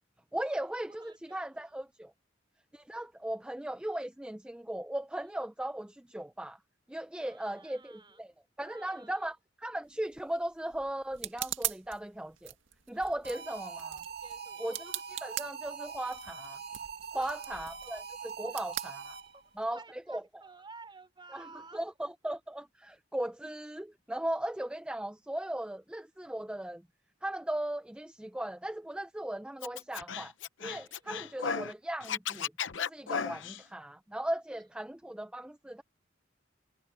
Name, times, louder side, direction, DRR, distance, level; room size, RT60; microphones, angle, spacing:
voice 1, 0.3-2.1 2.7-6.6 6.9-8.3 8.6-9.4 9.6-12.5 12.9-14.0 14.6-16.6 17.1-19.2 19.6-20.2 21.3-21.4 21.7-26.8 27.2-30.3 30.6-35.8, right 1 dB, 5° right, 0.4 m, -37 dB
voice 2, 0.9-1.8 7.1-8.2 8.6-9.3 12.9-13.1 14.1-14.7 17.1-17.4 18.5-18.6 19.3-19.4 19.7-21.9 30.8-31.1 34.5-34.6, right 3 dB, 25° right, 3.7 m, -53 dB
sound 1, 9.8-19.7, right 13 dB, 85° right, 1.9 m, -42 dB
sound 2, 13.2-19.5, right 6 dB, 60° right, 1.9 m, -43 dB
Scratching (performance technique), 29.6-31.7 32.0-33.6, left 7 dB, 70° left, 0.8 m, -35 dB
head